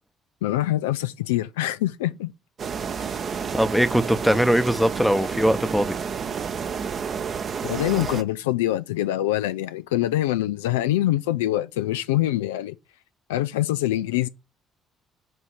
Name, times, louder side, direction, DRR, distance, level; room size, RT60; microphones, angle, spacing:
voice 1, 0.4-2.3 7.6-12.8 13.3-14.3, left 14 dB, 80° left, 0.3 m, -24 dB
sound 1, 2.6-8.2, right 6 dB, 45° right, 0.7 m, -30 dB
voice 2, 3.5-5.9, equal, ahead, 0.7 m, -21 dB
7.6 x 2.8 x 5.0 m
hypercardioid pair, 50°, 0 cm